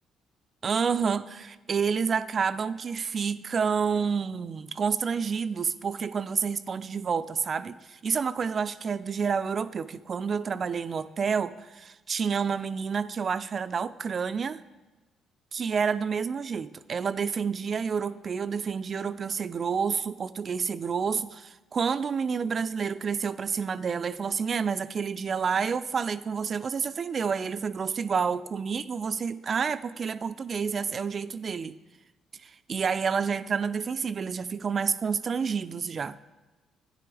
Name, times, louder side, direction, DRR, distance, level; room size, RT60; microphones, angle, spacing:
voice 1, 0.6-14.6 15.5-31.7 32.4-36.2, right 6 dB, 45° right, 14 dB, 0.4 m, -29 dB
12.5 x 9.8 x 3.4 m, 1.1 s
hypercardioid pair, 50°, 0 cm